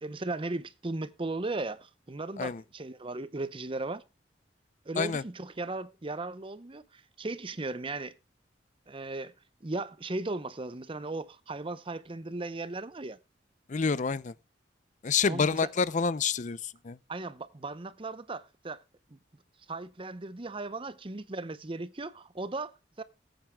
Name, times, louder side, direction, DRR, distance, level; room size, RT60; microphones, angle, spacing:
voice 1, 0.0-4.0 4.9-8.2 8.9-9.3 9.6-13.2 15.3-15.7 17.1-18.8 19.1-19.2 19.7-23.0, right 2 dB, 30° right, 0.7 m, -37 dB
voice 2, 13.7-14.3 15.0-17.0, left 5 dB, 45° left, 0.5 m, -28 dB
19.0 x 9.0 x 2.3 m
head